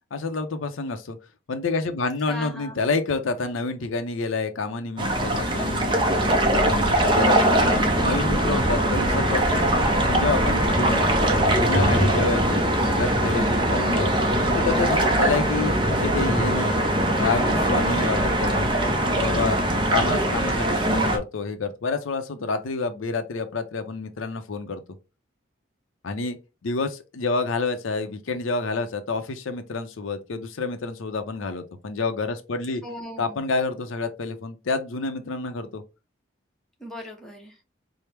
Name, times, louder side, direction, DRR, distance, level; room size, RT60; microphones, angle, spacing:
voice 1, 0.1-1.2 1.5-9.6 10.1-11.0 11.4-12.6 12.9-14.1 14.6-16.8 17.2-18.7 19.2-24.8 26.0-26.4 26.6-32.8 33.2-35.8, left 3 dB, 85° left, 0.6 m, -28 dB
voice 2, 2.3-2.9 9.7-11.3 32.8-33.4 36.8-37.6, left 1 dB, ahead, 0.8 m, -39 dB
sound 1, 5.0-21.2, right 1 dB, 25° right, 0.5 m, -21 dB
4.4 x 2.0 x 3.3 m
head